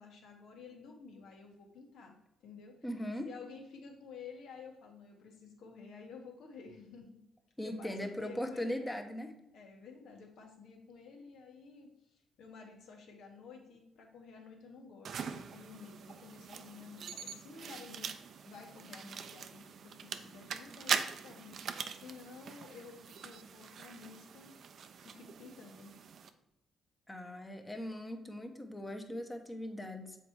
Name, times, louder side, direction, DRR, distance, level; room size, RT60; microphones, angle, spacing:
voice 1, 0.0-2.2 2.4-2.8 3.2-7.2 7.6-8.9 9.5-24.5 25.0-25.9, left 5 dB, 75° left, 2 dB, 1.6 m, -52 dB
voice 2, 2.8-3.3 7.6-9.3 27.1-30.2, left 1 dB, 15° left, 5 dB, 1.0 m, -39 dB
sound 1, 15.1-26.3, right 7 dB, 60° right, 0.5 m, -42 dB
7.1 x 4.2 x 4.7 m, 0.88 s
cardioid pair, 90°, 0 cm